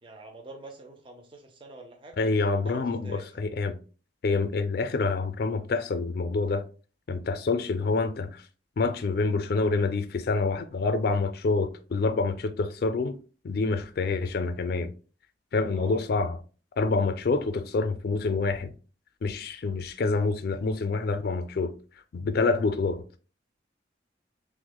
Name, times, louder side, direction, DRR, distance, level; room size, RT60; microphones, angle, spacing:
voice 1, 0.0-2.2 2.6-3.2 15.7-16.0, right 2 dB, 30° right, 0.5 m, -45 dB
voice 2, 2.2-3.8 4.2-6.6 7.1-8.4 8.8-13.2 13.4-14.9 15.5-16.4 16.8-18.7 19.2-21.7 22.1-23.2, left 3 dB, 55° left, 0.4 m, -27 dB
5.9 x 2.1 x 2.2 m
head